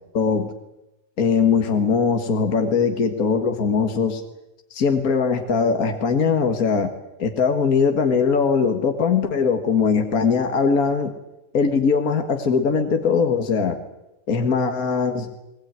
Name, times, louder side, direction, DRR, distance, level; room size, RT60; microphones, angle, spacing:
voice 1, 0.1-0.5 1.2-4.2 4.7-6.9 7.2-11.1 11.5-13.8 14.3-15.3, left 5 dB, 60° left, 6 dB, 2.1 m, -20 dB
20.5 x 20.5 x 9.5 m, 0.94 s
omnidirectional pair, 1.8 m